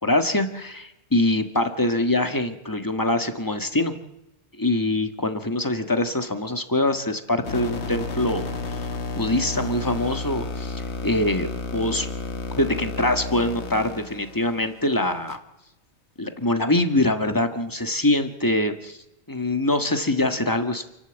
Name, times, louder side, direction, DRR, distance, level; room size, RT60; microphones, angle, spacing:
voice 1, 0.0-3.9 4.6-8.5 9.1-11.5 11.7-12.1 12.6-15.4 16.2-19.0 19.3-20.9, left 1 dB, 20° left, 7 dB, 1.6 m, -24 dB
sound 1, 7.4-15.4, left 4 dB, 75° left, 1.5 m, -32 dB
29.0 x 11.0 x 8.1 m, 0.93 s
omnidirectional pair, 1.1 m